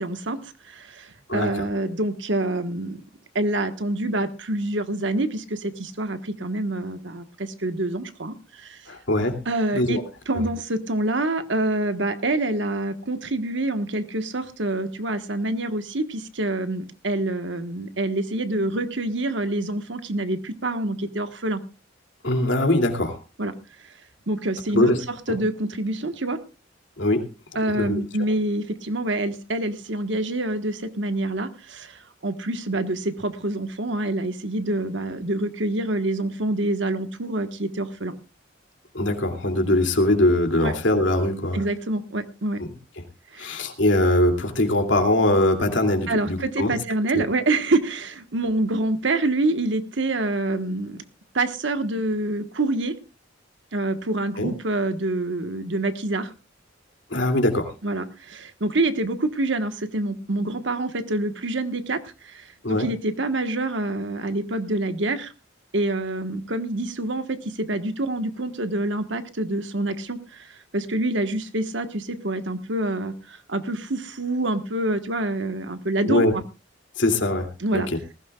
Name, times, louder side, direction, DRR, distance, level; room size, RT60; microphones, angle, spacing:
voice 1, 0.0-3.0 3.3-8.8 9.4-21.6 23.4-23.5 24.3-26.4 27.5-38.1 40.6-40.7 41.5-42.6 43.3-43.5 46.1-51.0 51.3-52.9 53.7-56.3 57.8-65.3 65.7-76.4 77.6-77.9, right 2 dB, 70° right, 9 dB, 1.4 m, -26 dB
voice 2, 1.3-1.6 8.9-9.4 9.7-10.0 10.3-10.4 22.2-23.2 24.7-25.0 25.3-25.4 27.0-27.2 27.7-28.0 38.9-41.6 43.4-46.7 47.1-47.3 54.4-54.5 57.1-57.7 62.6-62.9 76.0-76.3 77.0-77.5 77.7-77.8, left 1 dB, 70° left, 4 dB, 2.7 m, -21 dB
19.5 x 15.5 x 2.4 m, 0.29 s
head